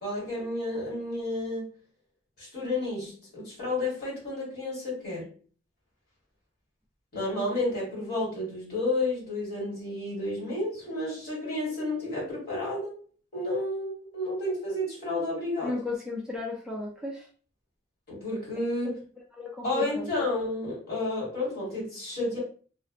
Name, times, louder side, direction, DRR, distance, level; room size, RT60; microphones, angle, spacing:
voice 1, 0.0-1.8 2.4-5.3 7.1-13.0 13.3-15.8 18.1-19.0 19.6-22.4, left 2 dB, 55° left, -5 dB, 1.5 m, -31 dB
voice 2, 15.6-17.3 18.6-18.9 19.4-20.1, left 3 dB, 5° right, -3 dB, 0.3 m, -34 dB
2.4 x 2.1 x 2.6 m, 0.41 s
head